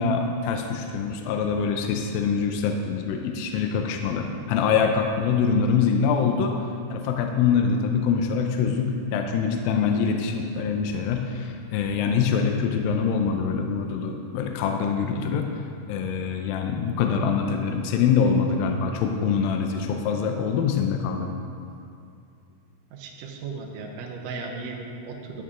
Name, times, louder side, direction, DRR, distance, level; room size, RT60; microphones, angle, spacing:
voice 1, 0.0-6.6 6.9-15.5 15.9-21.4, left 6 dB, 80° left, 4 dB, 2.1 m, -24 dB
voice 2, 22.9-25.4, right 4 dB, 75° right, 0 dB, 2.0 m, -36 dB
12.0 x 8.3 x 3.7 m, 2.5 s
omnidirectional pair, 4.8 m